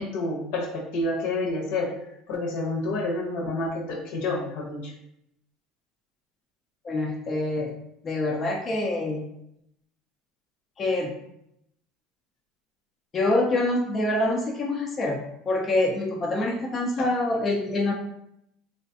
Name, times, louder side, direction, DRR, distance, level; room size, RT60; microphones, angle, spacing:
voice 1, 0.0-1.9 2.3-4.9, left 2 dB, 75° left, -2 dB, 0.8 m, -29 dB
voice 2, 6.8-7.7 8.0-9.2 10.8-11.2 13.1-15.2 15.5-17.9, left 2 dB, 30° left, 0 dB, 0.4 m, -25 dB
3.1 x 2.3 x 2.6 m, 0.77 s
supercardioid pair, 100°, 0 cm